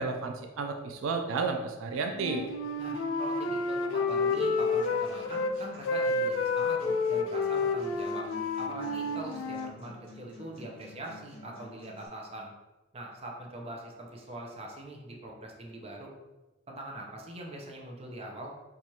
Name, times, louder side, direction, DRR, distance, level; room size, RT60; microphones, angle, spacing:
voice 1, 0.0-2.5, right 4 dB, 80° right, 5 dB, 0.4 m, -32 dB
Wind instrument woodwind instrument, 2.1-5.5 5.8-9.7, left 3 dB, 65° left, 0.3 m, -30 dB
voice 2, 2.8-8.3 8.6-12.5 12.9-16.1 16.7-18.5, right 1 dB, 30° right, -1 dB, 0.6 m, -42 dB
Acoustic guitar, 4.1-12.1, left 2 dB, 30° left, 1.4 m, -51 dB
4.5 x 2.4 x 2.8 m, 1.1 s
head